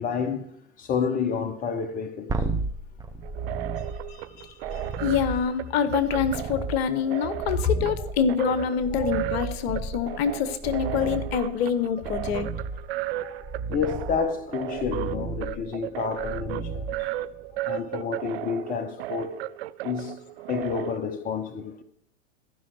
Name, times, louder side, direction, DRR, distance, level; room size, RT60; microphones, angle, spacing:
voice 1, 0.0-2.4 7.5-7.6 8.0-8.1 8.9-9.1 13.2-13.4 13.7-17.1 17.6-19.4 19.8-21.8, left 6 dB, 20° left, 0.9 m, -30 dB
sound 1, 2.3-17.6 20.7-20.8, right 3 dB, 10° right, 0.7 m, -35 dB
sound 2, 3.2-21.0, right 16 dB, 55° right, 0.5 m, -35 dB
voice 2, 4.4-12.5, left 7 dB, 55° left, 1.1 m, -26 dB
14.5 x 5.5 x 6.4 m
figure-of-eight pair, 95°, 38 cm